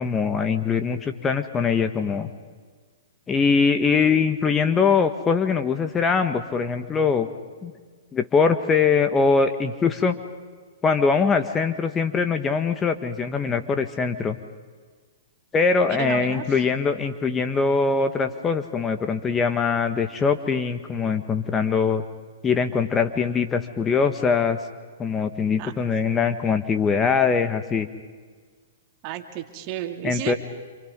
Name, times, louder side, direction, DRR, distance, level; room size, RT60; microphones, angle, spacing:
voice 1, 0.0-2.3 3.3-7.3 7.6-7.7 8.1-10.2 10.8-14.4 15.5-22.0 22.4-24.6 25.0-27.9 30.0-30.3, left 5 dB, 20° left, 8 dB, 1.6 m, -22 dB
voice 2, 15.9-16.7 25.6-25.8 29.0-30.4, right 12 dB, 40° right, 6 dB, 2.5 m, -32 dB
28.0 x 28.0 x 5.4 m, 1.5 s
hypercardioid pair, 115°, 0 cm